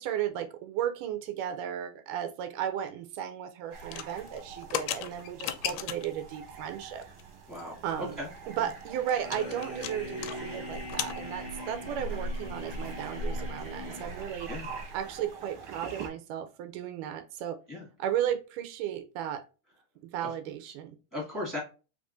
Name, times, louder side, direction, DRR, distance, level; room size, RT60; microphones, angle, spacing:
voice 1, 0.0-7.0 7.8-8.2 8.5-14.5 14.9-17.6 18.0-19.4 20.1-21.0, right 10 dB, 85° right, 2.2 m, -34 dB
sound 1, 3.7-16.1, right 2 dB, 60° right, 2.1 m, -42 dB
sound 2, 3.8-6.2 6.8-7.2 7.5-7.6 7.9-8.0 8.4-10.4 10.6-11.2, left 11 dB, 80° left, 1.6 m, -36 dB
voice 2, 7.5-8.3 14.5-14.7 17.7-17.8 20.2-20.3 21.1-21.6, left 1 dB, 10° left, 0.8 m, -37 dB
sound 3, 9.2-14.5, left 1 dB, 55° left, 0.7 m, -42 dB
4.7 x 3.6 x 2.5 m
omnidirectional pair, 3.7 m